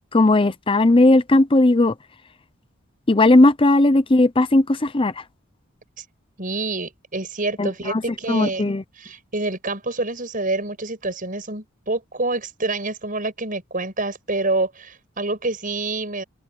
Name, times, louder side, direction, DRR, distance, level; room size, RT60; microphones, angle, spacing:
voice 1, 0.1-1.9 3.1-5.1 7.6-8.0 8.3-8.8, left 2 dB, 25° left, 0.6 m, -16 dB
voice 2, 6.4-16.2, right 2 dB, 40° right, 7.3 m, -27 dB
head